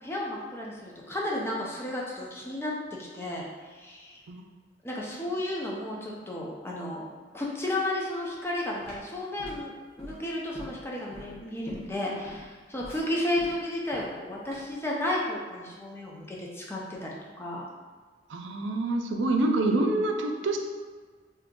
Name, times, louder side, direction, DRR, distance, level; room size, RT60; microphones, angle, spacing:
voice 1, 0.0-2.7 3.1-4.2 4.8-7.0 7.3-17.1 17.4-17.7, left 1 dB, 15° left, -4 dB, 0.5 m, -33 dB
sound 1, 8.4-14.9, left 1 dB, 35° left, 1.0 m, -45 dB
voice 2, 18.3-20.6, right 2 dB, 85° right, 3 dB, 0.4 m, -26 dB
2.8 x 2.4 x 3.6 m, 1.5 s
head